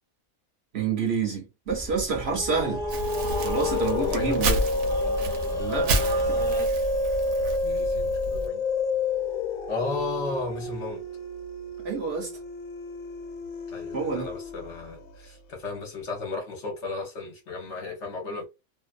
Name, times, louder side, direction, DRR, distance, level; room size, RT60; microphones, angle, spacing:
voice 1, 0.7-2.8 3.4-4.6 5.6-6.5 11.8-12.4 13.9-14.3, right 5 dB, 55° right, 0.9 m, -28 dB
sound 1, 1.7-6.7, equal, 5° left, 0.4 m, -37 dB
sound 2, 2.2-15.0, left 2 dB, 85° left, 1.0 m, -29 dB
Crumpling crinkling, 2.9-8.5, right 1 dB, 80° right, 1.1 m, -31 dB
voice 2, 3.9-4.5 7.6-8.6 9.7-11.1 13.7-18.5, left 3 dB, 60° left, 1.0 m, -34 dB
2.6 x 2.2 x 2.4 m
omnidirectional pair, 1.5 m